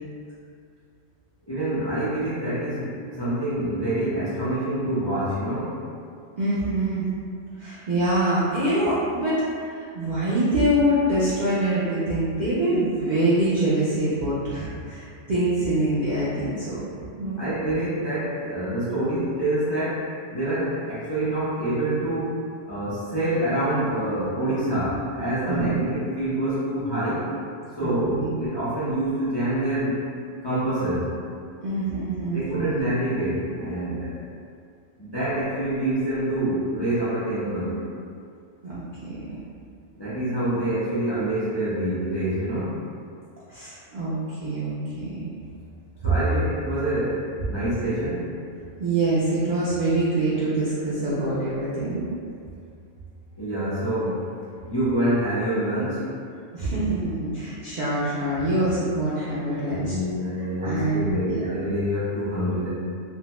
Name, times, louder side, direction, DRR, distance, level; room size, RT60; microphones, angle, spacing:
voice 1, 1.5-5.7 17.4-20.0 20.3-27.3 27.7-30.0 30.4-31.1 32.3-34.2 35.0-37.8 40.0-42.7 46.0-48.3 53.4-54.3 54.7-56.0 59.6-62.7, right 1 dB, 40° left, -13 dB, 0.4 m, -26 dB
voice 2, 6.4-7.1 7.6-16.8 17.2-17.4 25.5-25.8 27.8-28.3 31.6-32.7 38.6-39.4 43.5-45.3 48.8-52.1 56.5-60.0 60.6-61.5, right 1 dB, 65° right, -10 dB, 0.4 m, -25 dB
2.6 x 2.1 x 2.9 m, 2.3 s
omnidirectional pair, 1.3 m